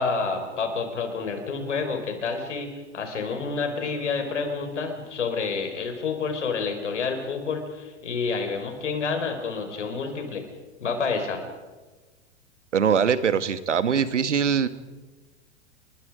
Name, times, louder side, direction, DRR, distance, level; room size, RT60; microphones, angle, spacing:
voice 1, 0.0-2.7 2.9-10.5 10.8-11.4, left 4 dB, 80° left, 5 dB, 5.2 m, -29 dB
voice 2, 12.7-14.7, right 7 dB, 85° right, 14 dB, 1.5 m, -22 dB
30.0 x 22.5 x 5.2 m, 1.3 s
hypercardioid pair, 100°, 35 cm